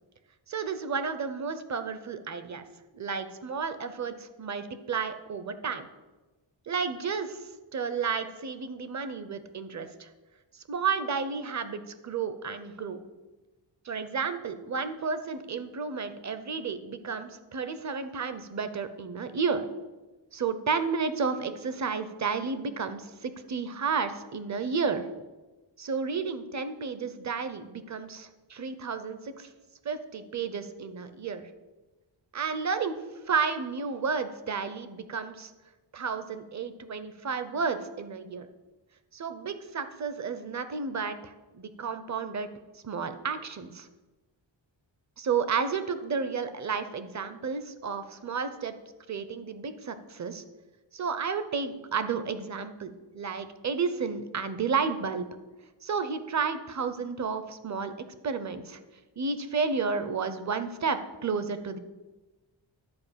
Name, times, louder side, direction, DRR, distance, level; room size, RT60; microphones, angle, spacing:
voice 1, 0.5-2.6 2.9-5.8 6.7-10.1 10.5-13.0 13.8-19.6 20.3-25.0 25.8-29.5 29.8-31.4 32.3-33.0 33.3-35.5 35.9-38.5 39.1-42.5 42.7-43.9 45.2-48.7 49.1-50.4 50.9-55.3 55.8-57.9 58.2-58.8 59.2-61.8, right 5 dB, 40° right, 11 dB, 0.6 m, -32 dB
10.5 x 4.7 x 7.3 m, 1.2 s
wide cardioid pair, 175°, 45 cm